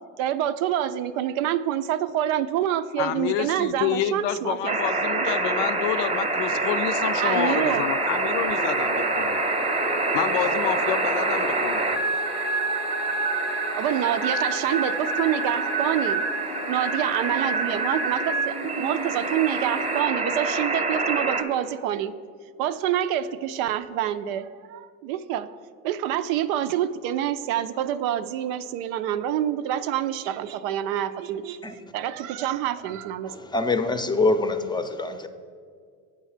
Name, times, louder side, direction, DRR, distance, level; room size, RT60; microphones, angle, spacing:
voice 1, 0.2-4.8 7.2-7.9 13.8-16.2 16.7-22.1 22.6-25.5 25.8-31.6 31.9-33.3, right 11 dB, 85° right, 12 dB, 0.5 m, -27 dB
voice 2, 3.0-9.4 10.1-12.0, left 11 dB, 70° left, 12 dB, 0.5 m, -28 dB
sound 1, 4.7-21.4, right 3 dB, 15° right, 0.9 m, -26 dB
sound 2, 4.9-20.0, left 2 dB, 90° left, 0.9 m, -38 dB
voice 3, 33.3-35.3, left 3 dB, 10° left, 9 dB, 0.5 m, -24 dB
8.1 x 5.4 x 4.9 m, 2.1 s
supercardioid pair, 90°, 40 cm